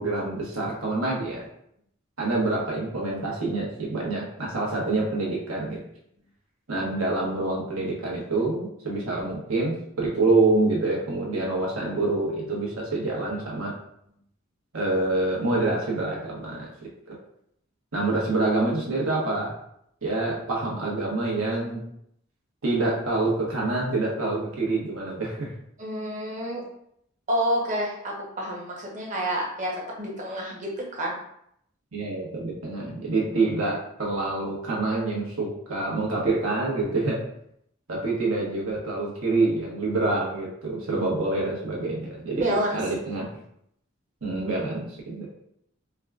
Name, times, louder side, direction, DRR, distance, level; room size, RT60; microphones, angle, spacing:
voice 1, 0.0-1.4 2.2-5.8 6.7-13.7 14.7-16.7 17.9-19.5 20.0-21.8 22.6-25.5 31.9-37.2 37.9-43.3 44.2-45.3, right 2 dB, 80° right, -3 dB, 1.1 m, -26 dB
voice 2, 25.8-26.7 27.3-31.2 41.0-41.1 42.3-42.9, equal, 40° right, -3 dB, 0.9 m, -29 dB
4.7 x 2.3 x 2.3 m, 0.72 s
head